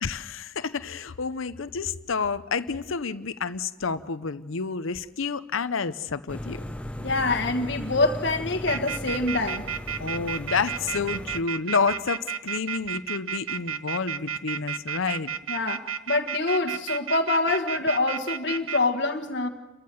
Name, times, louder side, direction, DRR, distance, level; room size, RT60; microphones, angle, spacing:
voice 1, 0.0-6.6 10.0-15.3, left 5 dB, 80° left, 0.7 m, -29 dB
sound 1, 6.3-11.4, left 1 dB, 5° left, 0.7 m, -37 dB
voice 2, 7.0-9.6 15.5-19.5, left 2 dB, 60° left, 1.5 m, -25 dB
sound 2, 8.7-18.8, right 8 dB, 85° right, 0.8 m, -31 dB
29.5 x 14.5 x 7.8 m
head